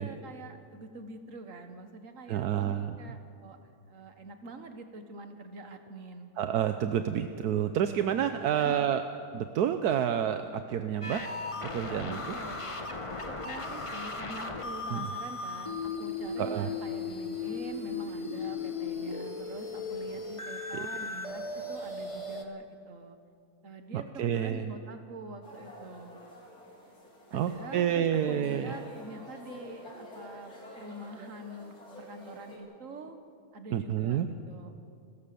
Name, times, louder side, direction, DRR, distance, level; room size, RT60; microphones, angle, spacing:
voice 1, 0.0-3.6 3.8-6.3 8.4-8.9 12.1-12.7 13.3-21.4 21.7-23.2 23.6-26.2 27.3-33.2 33.5-34.8, right 2 dB, 55° right, 7 dB, 1.8 m, -45 dB
voice 2, 2.3-3.0 6.4-9.0 9.3-11.2 11.6-12.3 14.9-15.1 16.4-16.7 20.7-20.9 23.9-24.8 27.3-28.7 33.7-34.3, right 9 dB, 80° right, 8 dB, 1.3 m, -29 dB
sound 1, 11.0-22.4, left 3 dB, 20° left, 1.2 m, -36 dB
sound 2, 25.4-32.6, left 1 dB, 70° left, 4.6 m, -49 dB
29.5 x 14.0 x 6.9 m, 2.4 s
omnidirectional pair, 1.7 m